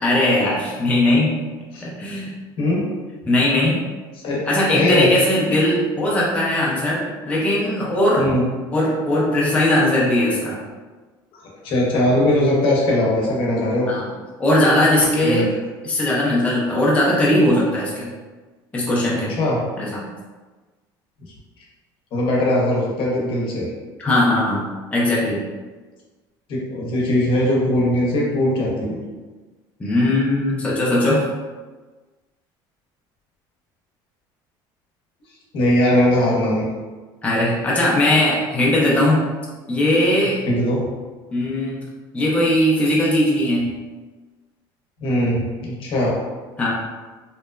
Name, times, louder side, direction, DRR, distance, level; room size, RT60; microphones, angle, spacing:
voice 1, 0.0-1.4 1.8-2.3 3.3-3.8 4.5-8.3 8.7-10.6 13.9-14.1 14.4-15.5 15.8-18.1 18.7-19.3 19.8-20.0 24.0-24.7 24.9-25.5 29.8-31.2 37.2-39.3 39.7-40.4 41.3-41.8 42.1-43.7 46.6-46.7, left 1 dB, 10° left, -5 dB, 0.5 m, -19 dB
voice 2, 4.7-5.1 8.2-8.5 11.3-13.9 15.2-15.5 19.1-19.6 22.1-23.7 26.5-29.0 35.5-36.7 40.5-40.8 45.0-46.2, left 1 dB, 55° left, -3 dB, 0.8 m, -20 dB
2.9 x 2.1 x 2.2 m, 1.3 s
cardioid pair, 115°, 10 cm